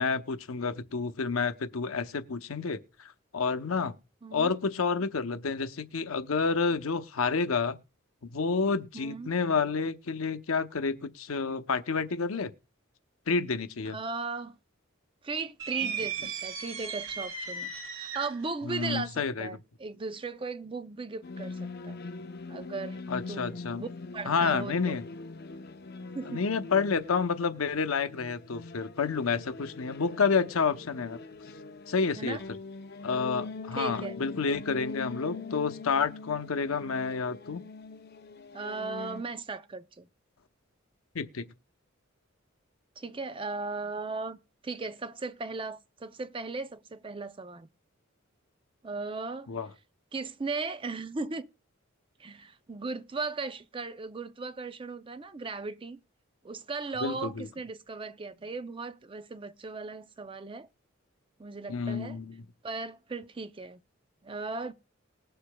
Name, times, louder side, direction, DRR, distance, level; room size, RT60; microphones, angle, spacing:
voice 1, 0.0-2.8 3.3-3.9 4.3-7.8 8.2-12.5 13.3-14.0 15.8-15.9 18.6-19.6 23.1-23.8 24.3-25.0 26.2-31.2 31.9-32.4 33.0-37.6 41.1-41.5 49.5-49.7 57.0-57.5 61.7-62.5, left 5 dB, 85° left, 0.7 m, -29 dB
voice 2, 4.2-4.5 8.9-9.3 13.9-14.6 15.2-17.7 18.0-22.0 22.5-23.9 24.1-25.0 26.1-26.4 32.1-32.4 33.7-34.2 38.5-40.1 43.0-44.4 44.6-47.7 48.8-49.5 50.1-51.5 52.2-56.0 56.4-60.7 61.4-62.2 62.6-63.8 64.2-64.7, right 3 dB, 25° right, 0.5 m, -37 dB
sound 1, 15.6-18.5, right 6 dB, 70° right, 1.8 m, -36 dB
sound 2, 21.2-39.2, left 3 dB, 50° left, 0.7 m, -42 dB
20.0 x 6.7 x 2.2 m
head